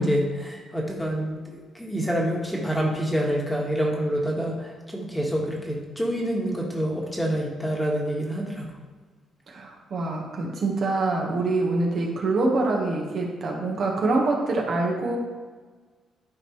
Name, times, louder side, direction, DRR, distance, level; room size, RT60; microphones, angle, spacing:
voice 1, 0.0-8.7, equal, 5° left, -1 dB, 1.6 m, -27 dB
voice 2, 9.5-15.2, right 2 dB, 55° right, -1 dB, 1.5 m, -25 dB
11.5 x 4.5 x 3.2 m, 1.4 s
cardioid pair, 90°, 0 cm